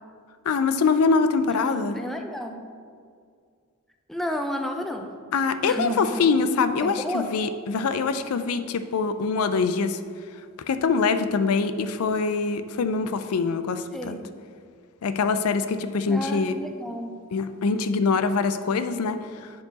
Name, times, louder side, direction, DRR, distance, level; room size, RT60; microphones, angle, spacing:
voice 1, 0.5-2.0 5.3-10.0 10.7-14.2 15.0-16.6 17.3-19.5, left 4 dB, 85° left, 11 dB, 0.4 m, -24 dB
voice 2, 1.6-2.6 4.1-5.1 5.6-6.3 6.8-7.2 13.9-14.2 16.1-17.1, equal, ahead, 3 dB, 0.5 m, -31 dB
9.5 x 4.6 x 4.0 m, 2.1 s
head